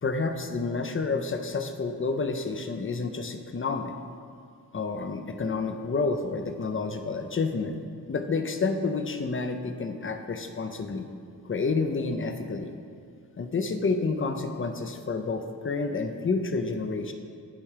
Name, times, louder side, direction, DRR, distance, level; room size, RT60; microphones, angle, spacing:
voice 1, 0.0-3.9 4.7-7.8 8.1-11.1 11.4-12.8 13.4-17.1, left 4 dB, 30° left, 7 dB, 0.6 m, -29 dB
8.8 x 3.5 x 5.0 m, 2.3 s
cardioid pair, 40°, 40 cm